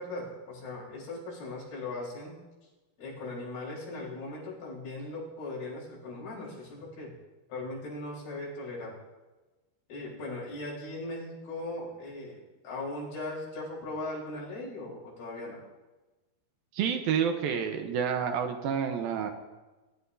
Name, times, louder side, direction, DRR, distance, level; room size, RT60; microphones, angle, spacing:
voice 1, 0.0-2.3 3.0-7.1 7.5-9.0 9.9-12.4 12.6-15.6, left 2 dB, 75° left, -6 dB, 6.3 m, -39 dB
voice 2, 16.7-19.3, right 7 dB, 80° right, 5 dB, 2.6 m, -29 dB
22.5 x 12.0 x 2.7 m, 1.2 s
omnidirectional pair, 4.5 m